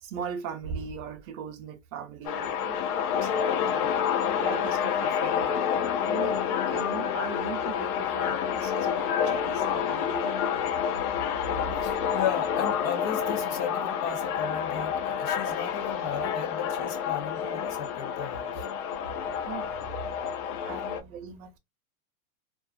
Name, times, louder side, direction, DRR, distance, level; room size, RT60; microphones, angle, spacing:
voice 1, 0.0-3.9 4.4-5.6 6.0-10.7 11.6-12.0 19.1-21.6, right 6 dB, 65° right, 0.7 m, -40 dB
sound 1, 2.2-21.0, left 8 dB, 80° left, 0.7 m, -28 dB
voice 2, 11.8-18.7, left 8 dB, 45° left, 0.7 m, -35 dB
2.4 x 2.4 x 2.3 m
supercardioid pair, 165°, 44 cm